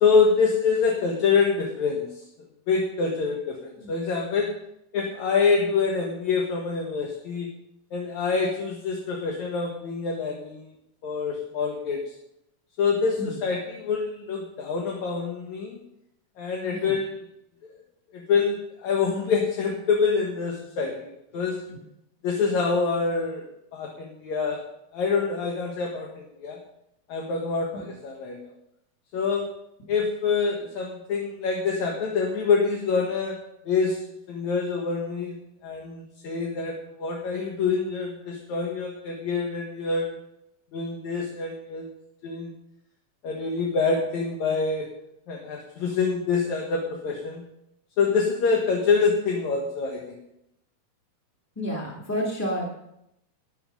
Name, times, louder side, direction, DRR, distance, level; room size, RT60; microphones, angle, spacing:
voice 1, 0.0-2.1 2.7-4.5 4.9-7.5 7.9-10.7 11.0-12.0 12.8-15.8 16.4-17.2 18.1-21.6 22.2-23.4 23.7-24.6 24.9-26.1 26.4-26.6 27.1-28.4 29.1-29.4 29.9-33.4 33.7-34.0 34.3-35.4 35.6-40.2 40.7-41.9 42.2-42.5 43.2-44.9 45.3-47.4 48.0-50.2, left 5 dB, 55° left, -1 dB, 2.5 m, -26 dB
voice 2, 51.5-52.7, equal, 5° left, -4 dB, 1.2 m, -30 dB
12.5 x 10.0 x 5.5 m, 0.79 s
omnidirectional pair, 4.5 m